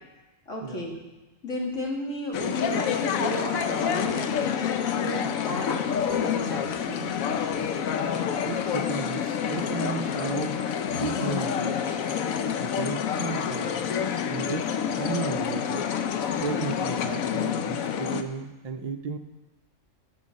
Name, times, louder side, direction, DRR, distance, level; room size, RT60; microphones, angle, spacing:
voice 1, 0.5-0.9 1.4-7.7, equal, 70° left, -2 dB, 2.6 m, -34 dB
sound 1, 2.3-18.2, left 8 dB, 85° left, 1.1 m, -28 dB
voice 2, 8.2-10.6 10.9-12.1 12.6-14.0 14.3-15.9 16.4-19.2, right 5 dB, 60° right, 6 dB, 0.4 m, -34 dB
13.5 x 6.0 x 6.3 m, 1.1 s
omnidirectional pair, 1.4 m